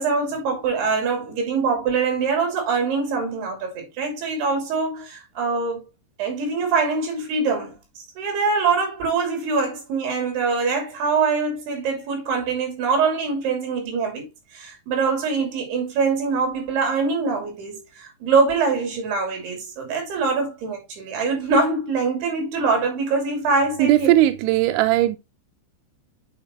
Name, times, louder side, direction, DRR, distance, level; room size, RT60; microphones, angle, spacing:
voice 1, 0.0-5.9 6.2-14.3 14.5-24.1, right 4 dB, 55° right, 4.5 m, -23 dB
voice 2, 23.8-25.2, right 14 dB, 85° right, 2.7 m, -18 dB
8.9 x 5.4 x 3.1 m
omnidirectional pair, 5.9 m